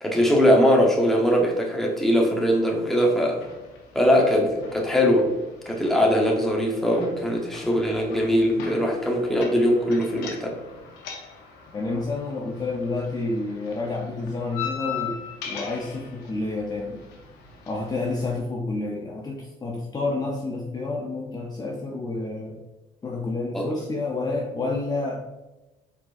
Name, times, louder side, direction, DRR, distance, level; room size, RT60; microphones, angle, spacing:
voice 1, 0.0-3.4 3.9-5.3 5.6-10.5 23.5-23.7, equal, ahead, -1 dB, 0.9 m, -21 dB
sound 1, 3.4-18.4, left 7 dB, 90° left, 0.8 m, -40 dB
voice 2, 11.7-17.0 17.7-22.6 23.0-25.2, left 3 dB, 25° left, -1 dB, 0.6 m, -29 dB
4.4 x 4.1 x 2.5 m, 1.0 s
cardioid pair, 110°, 17 cm